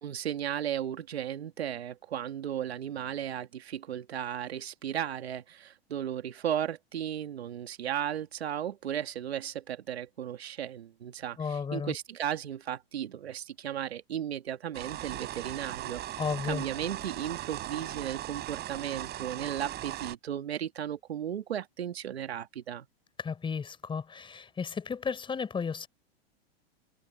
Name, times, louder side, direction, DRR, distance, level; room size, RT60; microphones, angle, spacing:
voice 1, 0.0-22.9, right 10 dB, 90° right, 2.2 m, -35 dB
voice 2, 11.4-11.9 16.2-16.6 23.2-25.9, left 6 dB, 15° left, 5.1 m, -33 dB
sound 1, 14.7-20.2, right 13 dB, 35° right, 5.6 m, -38 dB
hypercardioid pair, 125°, 31 cm